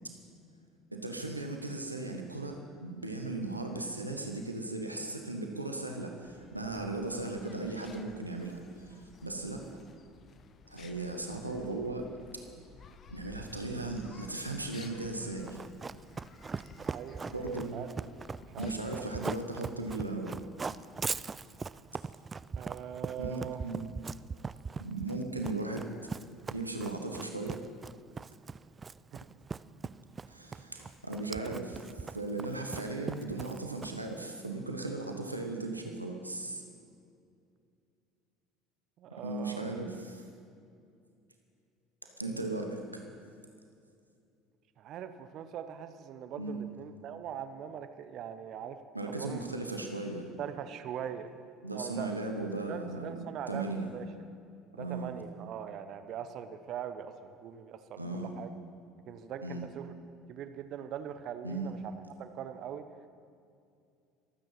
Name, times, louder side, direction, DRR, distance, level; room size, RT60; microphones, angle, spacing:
voice 1, 0.9-9.6 10.7-12.1 13.1-15.6 17.3-17.8 18.6-20.3 23.2-23.9 24.8-25.9 26.5-27.6 30.3-36.6 39.2-40.2 42.2-43.0 46.4-46.6 48.9-50.3 51.6-53.2 53.5-53.9 54.8-55.1 58.0-58.4 59.4-59.7 61.4-61.7, right 2 dB, 90° right, 3 dB, 1.2 m, -37 dB
sound 1, 6.2-19.3, left 5 dB, 40° left, 1.0 m, -55 dB
Run, 15.5-34.1, right 5 dB, 25° right, 0.4 m, -40 dB
voice 2, 16.8-17.9 18.5-19.0 22.5-23.6 29.1-29.2 39.0-39.7 44.8-48.8 49.0-49.4 50.4-51.3 51.7-52.1 52.6-54.1 54.7-58.5 59.1-59.9 60.3-61.9 62.2-62.8, right 9 dB, 50° right, 10 dB, 0.8 m, -41 dB
24.0 x 9.1 x 5.8 m, 2.4 s
figure-of-eight pair, 60°, 0 cm